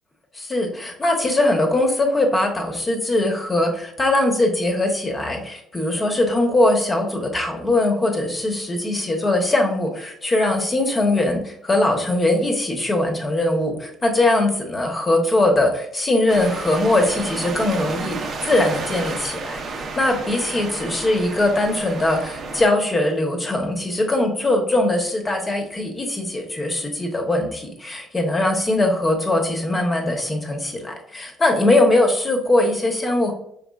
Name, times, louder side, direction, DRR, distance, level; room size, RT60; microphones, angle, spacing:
voice 1, 0.3-33.3, left 2 dB, 20° left, 3 dB, 0.9 m, -21 dB
sound 1, 16.3-22.6, right 4 dB, 45° right, 0.7 m, -31 dB
5.1 x 3.3 x 2.3 m, 0.75 s
cardioid pair, 120°, 0 cm